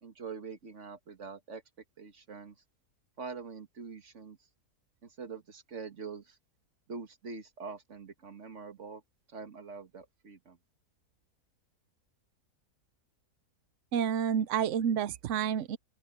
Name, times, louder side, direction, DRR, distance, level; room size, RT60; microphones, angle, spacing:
voice 1, 0.0-1.6 2.0-2.6 3.2-4.4 5.0-6.4 6.9-9.0 9.3-10.6, right 5 dB, 50° right, 2.0 m, -44 dB
voice 2, 13.9-15.8, right 8 dB, 65° right, 0.8 m, -29 dB
open air
omnidirectional pair, 1.7 m